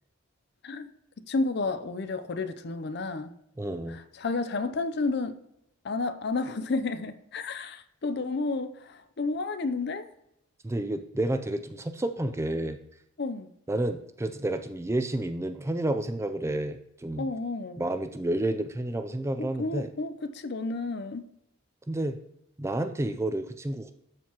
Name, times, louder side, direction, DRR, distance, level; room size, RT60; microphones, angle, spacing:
voice 1, 1.3-3.3 3.9-5.4 5.8-10.1 13.2-13.5 17.2-17.9 19.4-21.3, left 3 dB, 50° left, 0.5 m, -31 dB
voice 2, 3.6-4.0 10.6-12.8 13.7-17.3 17.8-19.9 21.9-22.2 22.6-23.9, right 1 dB, 15° right, 0.4 m, -30 dB
12.5 x 4.7 x 2.9 m
head